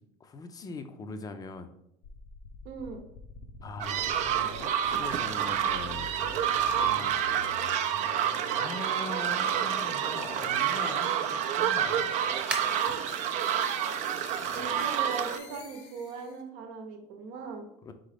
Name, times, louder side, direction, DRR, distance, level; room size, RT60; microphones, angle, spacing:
voice 1, 0.0-1.7 3.6-6.1 6.8-7.2 8.5-12.2 12.8-13.0 13.5-14.0 14.3-14.9 17.8-17.9, left 3 dB, 25° left, 8 dB, 0.5 m, -42 dB
sound 1, 2.0-16.4, left 5 dB, 80° left, 0.6 m, -47 dB
voice 2, 2.6-3.0 14.5-17.7, right 4 dB, 75° right, 5 dB, 0.8 m, -39 dB
sound 2, 3.8-15.4, right 9 dB, 50° right, 0.4 m, -29 dB
sound 3, 10.6-15.8, right 1 dB, 5° right, 0.8 m, -44 dB
3.8 x 3.7 x 3.4 m, 0.78 s
supercardioid pair, 120°, 15 cm